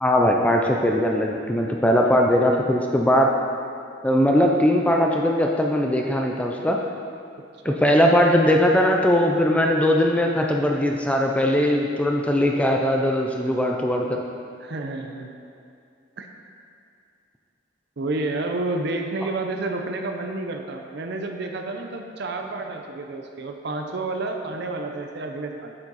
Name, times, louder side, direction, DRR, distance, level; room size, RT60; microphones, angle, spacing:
voice 1, 0.0-3.3 4.0-6.8 7.6-14.1, equal, 5° left, 1 dB, 0.4 m, -20 dB
voice 2, 14.6-15.3 16.2-16.3 18.0-25.7, right 2 dB, 60° right, 4 dB, 0.6 m, -30 dB
8.5 x 7.2 x 4.1 m, 2.4 s
head